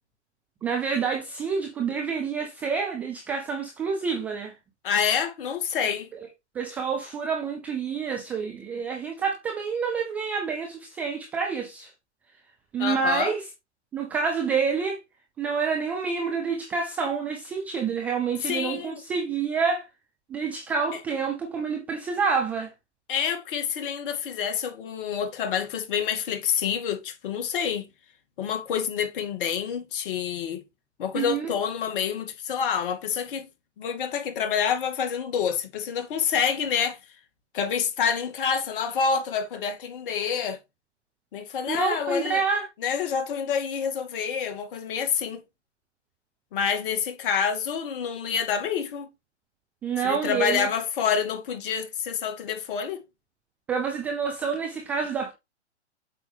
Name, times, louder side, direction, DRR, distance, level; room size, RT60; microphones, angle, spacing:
voice 1, 0.6-4.5 6.5-11.9 12.7-13.5 13.9-15.0 15.4-19.9 20.3-22.7 31.1-31.5 41.7-42.7 49.8-50.7 53.7-55.3, right 5 dB, 5° right, 0.3 m, -28 dB
voice 2, 4.8-6.1 12.8-13.3 18.5-19.0 20.9-21.0 23.1-27.9 28.4-30.6 31.0-33.5 33.8-37.0 37.5-40.6 41.3-42.4 42.8-45.4 46.5-49.1 50.0-53.0, left 7 dB, 45° left, 2.4 m, -27 dB
8.1 x 5.9 x 3.4 m
figure-of-eight pair, 120°, 36 cm